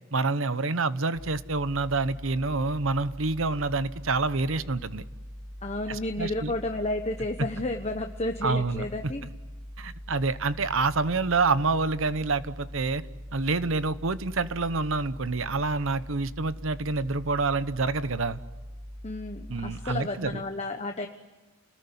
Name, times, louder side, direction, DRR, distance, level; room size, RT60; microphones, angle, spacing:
voice 1, 0.1-5.0 5.9-6.5 7.4-7.5 8.4-9.1 9.8-13.0 13.3-18.4 19.5-20.4, right 3 dB, 70° right, 14 dB, 1.0 m, -27 dB
sound 1, 1.1-20.0, equal, 45° right, 5.2 m, -42 dB
voice 2, 5.6-9.3 19.0-21.1, left 2 dB, 30° left, 5 dB, 1.1 m, -32 dB
29.5 x 20.0 x 10.0 m, 1.2 s
head